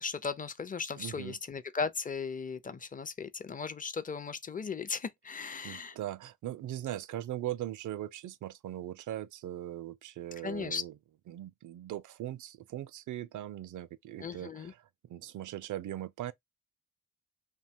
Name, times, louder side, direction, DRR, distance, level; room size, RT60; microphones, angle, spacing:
voice 1, 0.0-6.0 10.4-10.8 14.2-14.7, left 5 dB, 25° left, 0.5 m, -37 dB
voice 2, 1.0-1.4 5.6-10.9 11.3-16.3, right 13 dB, 60° right, 0.4 m, -40 dB
2.7 x 2.2 x 2.7 m
supercardioid pair, 60°, 35 cm